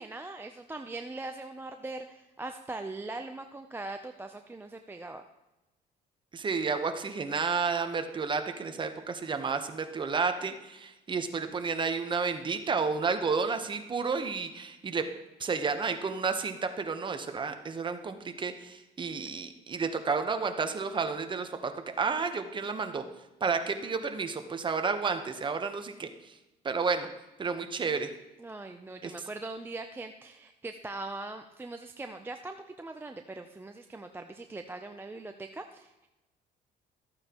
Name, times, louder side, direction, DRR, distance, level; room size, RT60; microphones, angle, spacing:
voice 1, 0.0-5.2 28.4-35.9, right 2 dB, 15° right, 6 dB, 0.5 m, -41 dB
voice 2, 6.3-15.0 15.4-21.7 22.0-23.0 23.4-26.4 26.6-27.1 27.4-28.1 29.0-29.1, right 5 dB, 30° right, 7 dB, 0.9 m, -31 dB
13.5 x 8.8 x 2.9 m, 1.0 s
cardioid pair, 110°, 17 cm